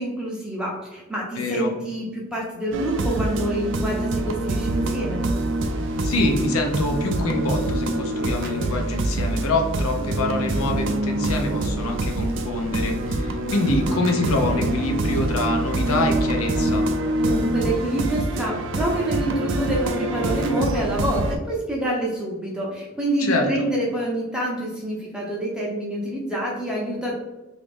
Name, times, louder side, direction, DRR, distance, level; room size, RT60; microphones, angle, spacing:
voice 1, 0.0-5.2 17.2-27.2, right 1 dB, 5° right, -4 dB, 0.6 m, -27 dB
voice 2, 1.4-1.7 6.0-16.9 23.2-23.7, left 2 dB, 75° left, 3 dB, 0.6 m, -25 dB
sound 1, 2.7-21.4, right 1 dB, 55° right, 0.3 m, -25 dB
3.0 x 2.5 x 3.4 m, 1.0 s
head